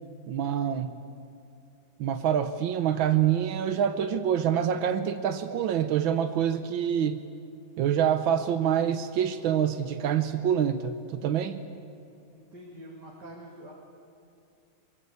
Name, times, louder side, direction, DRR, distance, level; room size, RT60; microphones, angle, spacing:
voice 1, 0.3-1.0 2.0-7.2 7.8-11.7, right 9 dB, 90° right, 9 dB, 1.7 m, -26 dB
voice 2, 12.3-13.7, right 1 dB, 60° right, -3 dB, 3.2 m, -46 dB
23.5 x 22.0 x 8.5 m, 2.6 s
omnidirectional pair, 2.1 m